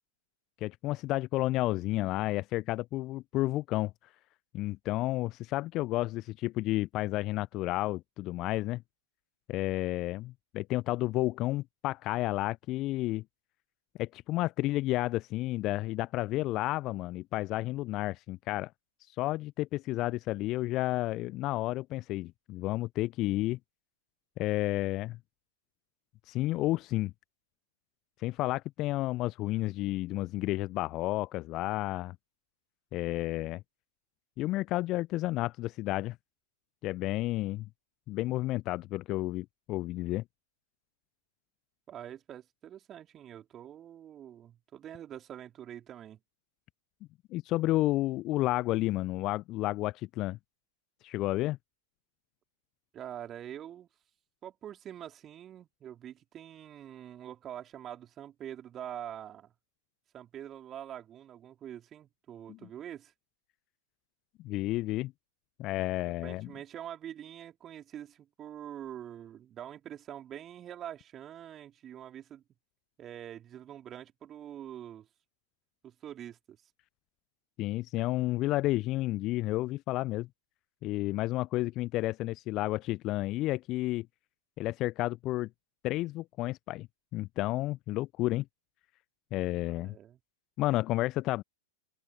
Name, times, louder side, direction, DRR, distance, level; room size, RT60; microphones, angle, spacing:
voice 1, 0.6-3.9 4.5-8.8 9.5-13.2 14.0-18.7 19.2-23.6 24.4-25.2 26.3-27.1 28.2-32.2 32.9-33.6 34.4-36.2 36.8-37.7 38.1-40.2 47.3-50.4 51.0-51.6 62.5-62.6 64.4-65.1 65.6-66.5 77.6-80.3 80.8-84.1 84.6-85.5 85.8-86.9 87.1-88.4 89.3-90.0 90.6-91.4, left 17 dB, 35° left, 0.6 m, -31 dB
voice 2, 41.9-46.2 52.9-53.9 54.4-59.5 60.1-63.1 66.0-72.4 73.0-75.1 75.8-76.6 89.6-90.2, right 10 dB, 25° right, 3.9 m, -45 dB
figure-of-eight pair, 95°, 0 cm